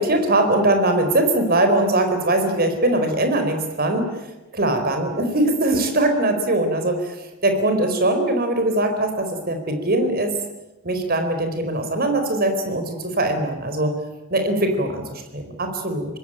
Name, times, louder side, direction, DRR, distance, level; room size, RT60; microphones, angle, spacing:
voice 1, 0.0-4.1 4.5-7.2 7.4-10.3 10.8-13.9 14.3-15.0 15.3-16.1, right 1 dB, 45° right, 6 dB, 4.3 m, -21 dB
25.0 x 21.0 x 9.0 m, 1.0 s
head